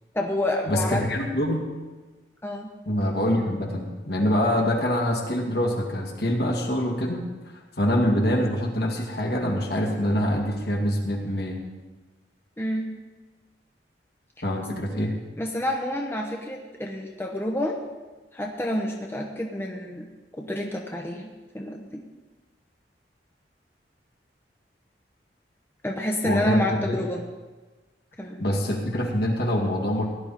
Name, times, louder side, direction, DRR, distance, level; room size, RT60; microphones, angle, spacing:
voice 1, 0.1-1.1 2.4-2.7 12.6-12.9 15.4-17.8 18.3-20.1 20.3-21.3 21.5-22.0 25.8-27.2 28.2-28.4, left 1 dB, 15° left, 1 dB, 0.9 m, -28 dB
voice 2, 0.7-1.6 2.9-7.3 7.8-11.6 14.4-15.1 26.2-27.0 28.4-30.1, equal, 60° left, 1 dB, 2.2 m, -25 dB
17.0 x 11.0 x 4.2 m, 1.3 s
head